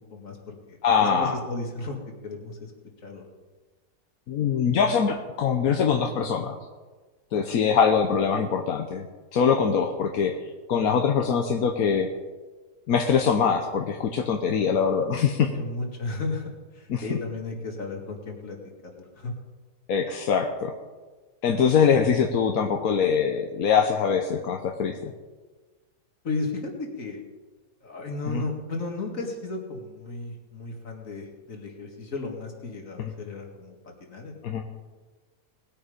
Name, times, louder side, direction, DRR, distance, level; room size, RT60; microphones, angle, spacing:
voice 1, 0.1-2.0 2.2-2.7 3.0-3.3 7.3-7.6 15.5-18.6 19.0-19.3 26.2-27.2 27.8-34.4, left 3 dB, 70° left, 1 dB, 2.5 m, -34 dB
voice 2, 0.8-1.4 4.3-6.6 7.3-9.0 9.3-10.3 10.7-12.1 12.9-15.5 16.9-17.0 19.9-20.7 21.4-25.1 28.3-28.4 33.0-33.1 34.4-34.6, left 6 dB, 90° left, 4 dB, 1.4 m, -23 dB
19.5 x 8.6 x 5.1 m, 1.3 s
omnidirectional pair, 1.5 m